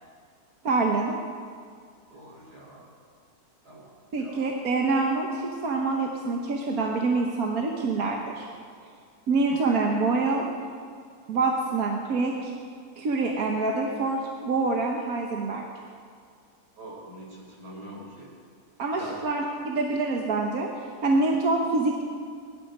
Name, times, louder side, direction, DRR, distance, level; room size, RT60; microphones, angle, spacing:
voice 1, 0.6-1.1 4.1-8.5 9.3-10.4 11.3-12.5 13.0-15.6 18.8-20.7 21.0-22.0, right 3 dB, 70° right, 0 dB, 1.7 m, -26 dB
voice 2, 2.1-2.9 3.6-4.5 8.8-8.9 16.8-18.3 18.9-19.2, right 1 dB, 90° right, -5 dB, 5.8 m, -44 dB
21.5 x 12.0 x 5.4 m, 2.1 s
omnidirectional pair, 1.7 m